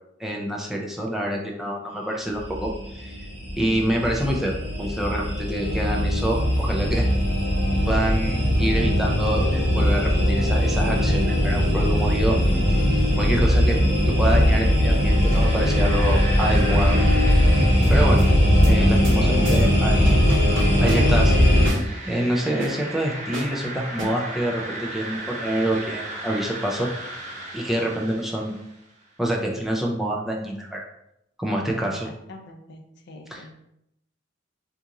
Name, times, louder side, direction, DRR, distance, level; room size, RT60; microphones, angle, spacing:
voice 1, 0.2-3.2 3.6-7.1 7.9-12.4 12.7-12.8 13.2-13.8 14.1-17.0 17.9-18.2 18.6-20.3 20.8-21.4 22.0-26.9 27.5-28.5 29.2-30.8 31.4-32.1 33.3-33.5, right 1 dB, ahead, -2 dB, 0.4 m, -26 dB
sound 1, 2.4-21.7, equal, 60° right, 1.3 m, -20 dB
voice 2, 5.6-6.0 31.8-33.5, left 2 dB, 60° left, 3 dB, 0.5 m, -44 dB
sound 2, 11.9-12.4 14.3-14.8 15.3-17.3 17.8-18.3 18.6-18.7 19.0-19.2 19.5-19.7 20.1-21.3 21.6-21.9 22.6-22.7 23.3-23.5 24.0-24.1, equal, 80° right, 1.1 m, -33 dB
Radio Windy Noise, 14.9-28.9, right 2 dB, 40° right, 0.7 m, -37 dB
2.8 x 2.5 x 3.7 m, 0.79 s
head